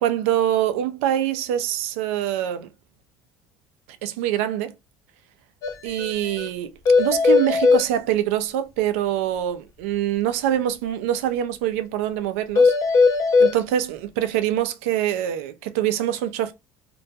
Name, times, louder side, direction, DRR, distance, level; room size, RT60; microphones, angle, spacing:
voice 1, 0.0-2.7 4.0-4.7 5.8-12.7 13.4-16.5, right 11 dB, 90° right, 0.4 m, -24 dB
sound 1, 5.6-5.7 6.0-6.1 6.4-6.5 6.9-7.8 12.6-13.5, left 4 dB, 55° left, 0.6 m, -17 dB
2.2 x 2.2 x 2.5 m
supercardioid pair, 95°, 7 cm